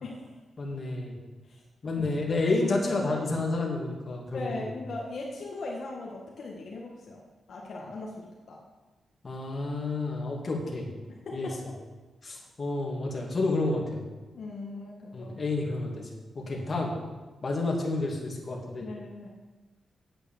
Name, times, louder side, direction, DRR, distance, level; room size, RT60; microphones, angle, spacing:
voice 1, 0.6-1.1 1.8-4.7 9.2-10.9 11.3-11.5 12.2-14.0 15.1-16.1 16.3-16.9 17.4-18.9, left 2 dB, 30° left, -1 dB, 2.5 m, -30 dB
voice 2, 4.3-7.2 7.5-8.6 11.2-11.6 14.3-15.3 18.8-19.3, left 2 dB, 60° left, -2 dB, 1.8 m, -39 dB
8.8 x 8.5 x 7.3 m, 1.2 s
wide cardioid pair, 130°, 0 cm